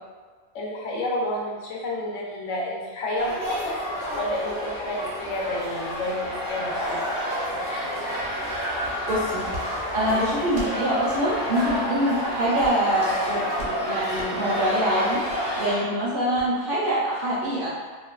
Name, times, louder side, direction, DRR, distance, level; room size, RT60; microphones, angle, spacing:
voice 1, 0.5-3.8 4.1-7.0, left 1 dB, 85° left, -3 dB, 0.9 m, -30 dB
sound 1, 3.2-15.8, equal, 50° left, 0.8 m, -29 dB
voice 2, 9.1-9.5 9.9-15.2 15.6-17.7, right 1 dB, 60° right, -6 dB, 0.6 m, -25 dB
sound 2, 9.5-9.7 10.5-10.7 11.6-11.8 12.5-12.9 13.6-13.8 14.1-14.3 15.3-15.4 16.3-16.5, right 1 dB, 75° right, 0.9 m, -37 dB
2.5 x 2.2 x 2.3 m, 1.5 s
omnidirectional pair, 1.3 m